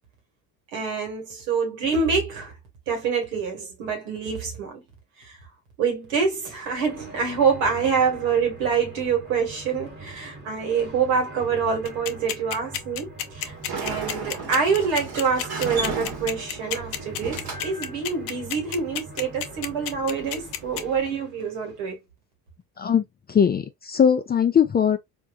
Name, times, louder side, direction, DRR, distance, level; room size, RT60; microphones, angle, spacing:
voice 1, 0.7-2.5 2.9-4.8 5.2-5.4 5.8-13.5 13.8-22.0, right 5 dB, 90° right, 1.7 m, -26 dB
sound 1, 6.1-21.9, right 3 dB, 25° right, 1.4 m, -43 dB
sound 2, 11.9-20.8, left 10 dB, 60° left, 0.7 m, -29 dB
Sliding door, 13.4-21.0, right 4 dB, 50° right, 1.4 m, -36 dB
voice 2, 22.8-25.0, left 7 dB, 25° left, 0.4 m, -20 dB
3.6 x 2.6 x 2.3 m
supercardioid pair, 85°, 46 cm